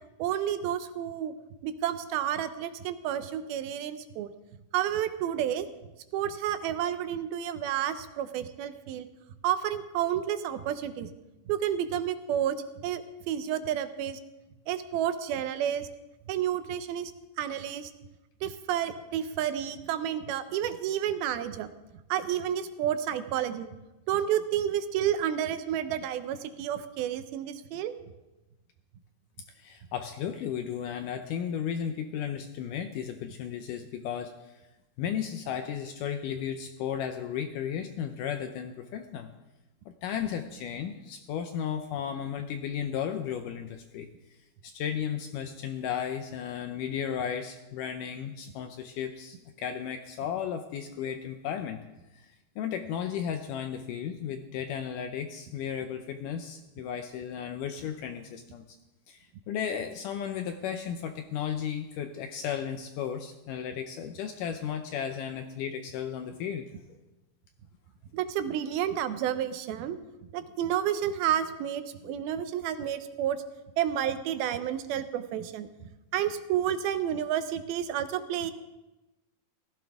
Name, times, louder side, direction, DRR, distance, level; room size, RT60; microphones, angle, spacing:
voice 1, 0.2-1.3 1.6-4.3 4.7-5.7 6.1-9.1 9.4-11.1 11.5-12.6 12.8-13.0 13.3-14.2 14.7-15.9 16.3-17.1 17.4-17.9 18.4-21.7 22.1-23.7 24.1-27.9 68.1-70.0 70.3-73.4 73.8-75.7 76.1-78.5, right 10 dB, 80° right, 10 dB, 2.6 m, -30 dB
voice 2, 29.6-34.6 35.0-39.3 40.0-44.1 44.6-51.8 52.1-58.6 59.1-66.7, left 8 dB, 80° left, 7 dB, 1.9 m, -34 dB
16.5 x 15.0 x 3.5 m, 1.0 s
omnidirectional pair, 4.4 m